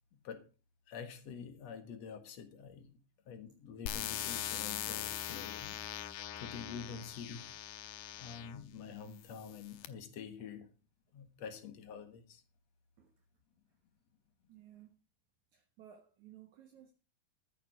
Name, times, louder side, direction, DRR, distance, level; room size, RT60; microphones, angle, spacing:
voice 1, 0.9-2.9 3.3-5.8 6.4-7.5 8.2-10.7 11.1-12.4, left 6 dB, 55° left, 2.5 m, -47 dB
sound 1, 3.9-8.6 9.3-9.9, left 11 dB, 80° left, 2.5 m, -41 dB
voice 2, 14.5-14.9 15.5-16.9, right 10 dB, 65° right, 2.5 m, -58 dB
14.0 x 9.2 x 5.0 m
omnidirectional pair, 4.0 m